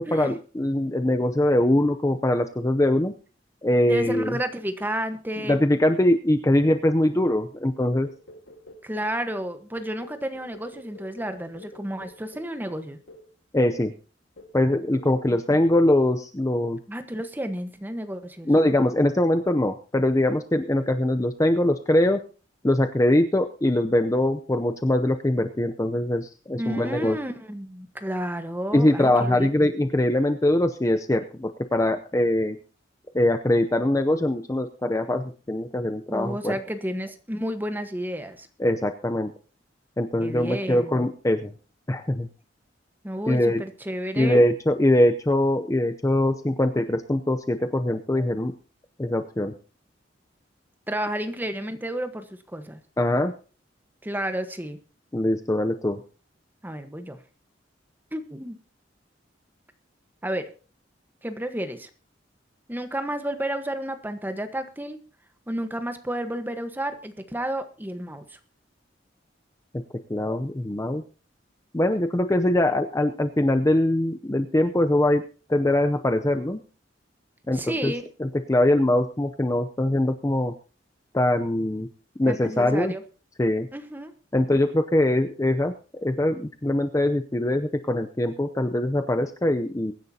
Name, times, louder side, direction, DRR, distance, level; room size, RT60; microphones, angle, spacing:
voice 1, 0.0-3.1 3.6-4.4 5.5-8.1 13.5-13.9 14.5-16.8 18.5-22.2 22.6-27.2 28.7-32.6 33.1-36.5 38.6-39.3 40.0-41.5 41.9-42.3 43.3-43.6 44.2-48.5 49.0-49.5 53.0-53.3 55.1-56.0 69.7-69.8 70.1-71.0 71.7-75.2 75.5-76.6 77.5-77.9 78.2-80.5 81.1-81.9 82.2-82.9 83.4-83.7 84.3-85.7 86.0-89.9, left 1 dB, 20° left, 7 dB, 0.6 m, -22 dB
voice 2, 3.9-5.6 8.8-13.0 15.3-15.4 16.9-18.5 26.6-29.5 36.1-38.5 40.2-41.0 43.0-44.5 50.9-52.8 54.0-54.8 56.6-57.2 58.1-58.6 60.2-60.5 61.2-61.9 62.7-65.0 65.5-68.4 77.5-78.1 82.3-83.0 83.7-84.1, right 1 dB, 10° right, 8 dB, 1.2 m, -31 dB
sound 1, 7.8-9.2 9.8-12.6 13.1-13.3 13.7-14.0 14.4-14.7 15.0-15.3 15.6-15.9, left 1 dB, 90° left, 1.8 m, -48 dB
23.0 x 10.5 x 2.8 m, 0.37 s
head